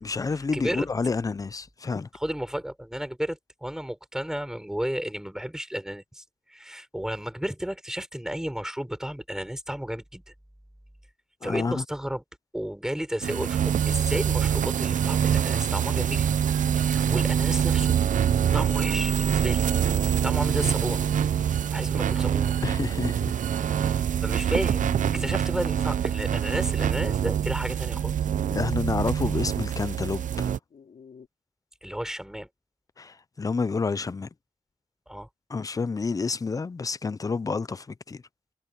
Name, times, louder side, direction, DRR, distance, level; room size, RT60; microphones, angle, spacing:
voice 1, 0.0-2.1 11.4-11.8 22.6-23.9 28.5-30.5 33.0-34.3 35.5-38.2, left 4 dB, 25° left, 0.5 m, -29 dB
voice 2, 0.5-0.9 2.1-10.2 11.4-12.2 12.5-16.3 16.7-18.0 18.5-19.7 20.2-21.0 21.7-22.6 24.2-24.8 25.1-28.1 31.8-32.5 35.1-35.3, equal, 5° right, 4.9 m, -32 dB
sound 1, 13.2-30.6, right 9 dB, 85° right, 0.6 m, -25 dB
Dog, 19.4-19.5 20.2-20.8 21.3-21.4 24.8-25.8 27.3-27.8 30.7-31.3, left 6 dB, 75° left, 3.7 m, -47 dB
wide cardioid pair, 135°, 13 cm